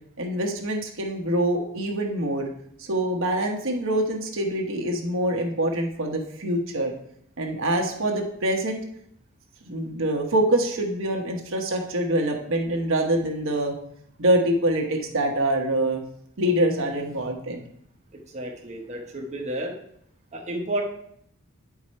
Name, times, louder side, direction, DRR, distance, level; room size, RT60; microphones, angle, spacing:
voice 1, 0.2-2.5 2.8-6.9 7.4-8.8 9.6-13.7 14.2-16.0 16.4-17.6, right 1 dB, 65° right, 2 dB, 1.1 m, -25 dB
voice 2, 18.3-19.7 20.3-20.8, right 1 dB, 35° right, -1 dB, 1.0 m, -31 dB
9.2 x 4.9 x 4.3 m, 0.70 s
head